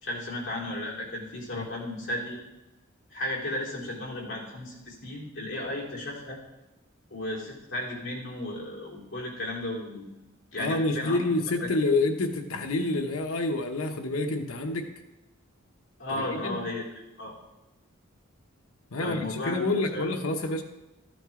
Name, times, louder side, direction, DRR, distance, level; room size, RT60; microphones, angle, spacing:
voice 1, 0.0-2.4 3.1-6.4 7.1-10.1 10.5-11.2 11.6-11.7 16.0-16.8 17.2-17.3 19.0-19.6 19.9-20.1, left 1 dB, 60° left, -4 dB, 3.7 m, -34 dB
voice 2, 10.6-14.9 16.1-16.6 18.9-20.6, left 2 dB, 75° left, 5 dB, 1.0 m, -28 dB
14.0 x 9.0 x 3.8 m, 1.0 s
head